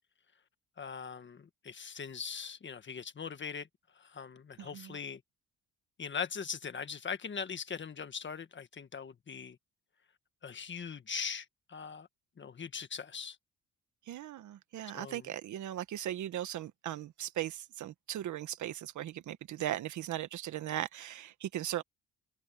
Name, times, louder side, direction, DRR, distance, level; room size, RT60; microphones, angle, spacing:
voice 1, 0.8-3.7 4.0-5.2 6.0-9.6 10.4-12.1 12.4-13.4 14.9-15.3, left 6 dB, 40° left, 1.6 m, -41 dB
voice 2, 4.6-4.9 14.1-21.8, right 12 dB, 75° right, 1.5 m, -38 dB
cardioid pair, 90°, 30 cm